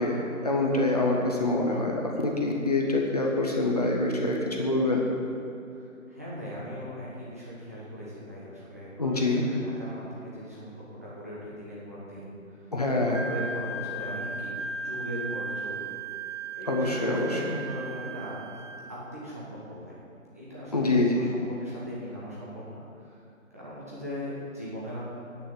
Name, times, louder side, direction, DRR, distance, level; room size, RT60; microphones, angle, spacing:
voice 1, 0.0-5.0 9.0-9.4 12.7-13.2 16.7-17.6 20.7-21.3, left 2 dB, 30° left, -1 dB, 1.1 m, -25 dB
voice 2, 5.8-9.0 9.3-12.7 13.0-14.6 14.8-15.8 16.5-18.4 18.9-20.0 20.3-23.2 23.5-25.0, equal, 10° right, -8 dB, 1.1 m, -39 dB
Wind instrument woodwind instrument, 13.1-18.9, right 3 dB, 60° right, 1.0 m, -36 dB
8.9 x 7.4 x 8.8 m, 2.7 s
figure-of-eight pair, 170°, 42 cm